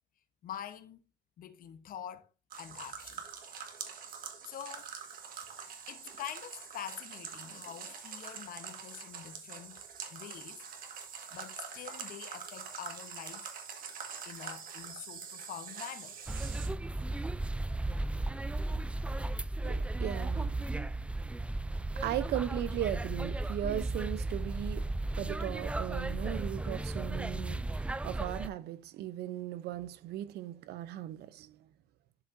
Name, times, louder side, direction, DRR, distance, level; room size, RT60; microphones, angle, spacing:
voice 1, 0.4-1.0 1.4-2.3 2.6-3.2 4.4-4.9 5.9-9.8 10.1-10.6 11.3-13.5 14.2-16.2, left 10 dB, 55° left, 1.0 m, -45 dB
sound 1, 2.5-16.7, right 7 dB, 55° right, 1.7 m, -45 dB
sound 2, 16.3-28.5, right 2 dB, 5° right, 0.3 m, -35 dB
voice 2, 19.6-20.9 22.0-31.7, right 12 dB, 75° right, 0.7 m, -38 dB
11.5 x 5.2 x 2.6 m
cardioid pair, 110°, 17 cm